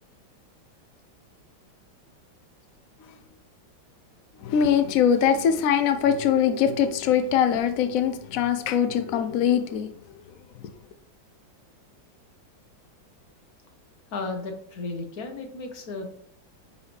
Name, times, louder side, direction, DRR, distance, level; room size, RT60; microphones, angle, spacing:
voice 1, 4.4-10.0 10.6-10.7, left 8 dB, 80° left, 0.7 m, -22 dB
voice 2, 14.1-16.1, left 3 dB, 50° left, 1.4 m, -34 dB
9.5 x 4.4 x 3.2 m
omnidirectional pair, 2.2 m